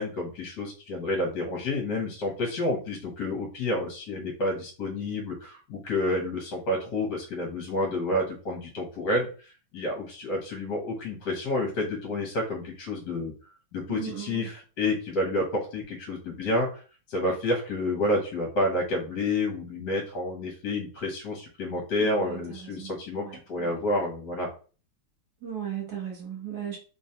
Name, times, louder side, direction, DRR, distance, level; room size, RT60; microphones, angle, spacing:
voice 1, 0.0-9.3 9.7-13.3 13.7-16.8 17.1-24.5, left 1 dB, 60° left, -1 dB, 1.4 m, -29 dB
voice 2, 13.9-14.5 22.0-22.2 22.8-22.9 23.2-23.7 25.4-26.8, right 9 dB, 55° right, -1 dB, 1.2 m, -36 dB
3.6 x 3.0 x 2.7 m, 0.36 s
omnidirectional pair, 2.4 m